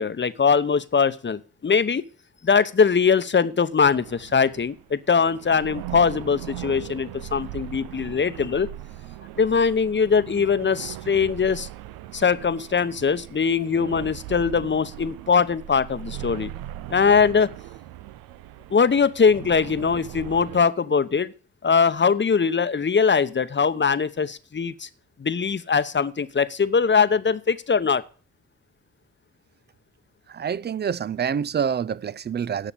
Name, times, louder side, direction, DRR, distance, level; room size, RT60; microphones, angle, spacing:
voice 1, 0.0-2.0 2.4-8.7 9.4-11.7 12.1-16.5 16.9-17.5 18.7-21.3 21.6-24.9 25.2-28.0, left 5 dB, 30° left, 0.9 m, -21 dB
sound 1, 3.8-20.7, right 14 dB, 75° right, 0.6 m, -39 dB
voice 2, 30.3-32.7, right 7 dB, 30° right, 0.5 m, -27 dB
10.0 x 6.5 x 8.6 m
hypercardioid pair, 40°, 35 cm